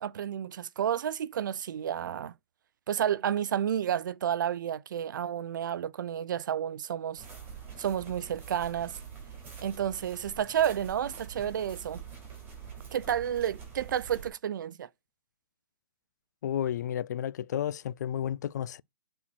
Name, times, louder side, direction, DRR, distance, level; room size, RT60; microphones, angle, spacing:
voice 1, 0.0-2.3 2.9-7.2 7.8-9.0 9.6-12.0 12.9-14.9, right 9 dB, 60° right, 0.6 m, -31 dB
sound 1, 7.2-14.3, right 6 dB, 15° right, 4.5 m, -45 dB
voice 2, 16.4-18.8, left 10 dB, 50° left, 0.4 m, -32 dB
8.6 x 4.3 x 4.4 m
hypercardioid pair, 155°, 12 cm